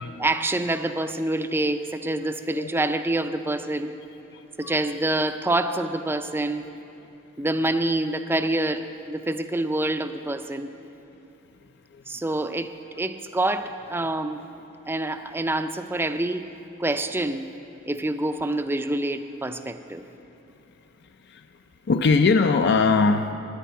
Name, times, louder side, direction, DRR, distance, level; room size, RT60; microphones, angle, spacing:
voice 1, 0.2-3.9 4.6-6.6 7.4-10.7 12.1-14.4 14.9-16.5 16.8-17.5 17.9-20.0, right 2 dB, 10° right, 9 dB, 0.4 m, -26 dB
voice 2, 2.5-2.8 4.3-4.7 11.9-12.0 21.2-21.5 21.9-23.3, left 4 dB, 55° left, 8 dB, 0.4 m, -21 dB
10.0 x 9.9 x 9.2 m, 3.0 s
head